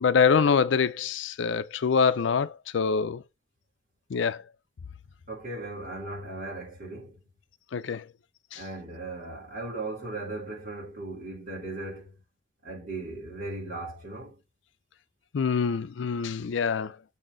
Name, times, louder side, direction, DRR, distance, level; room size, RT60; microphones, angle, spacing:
voice 1, 0.0-3.2 4.1-4.4 7.7-8.0 8.5-8.6 15.3-16.9, left 6 dB, 75° left, 0.5 m, -25 dB
voice 2, 5.3-7.2 8.6-12.1 12.6-14.4, right 2 dB, 50° right, 3.7 m, -37 dB
6.9 x 4.2 x 3.8 m
head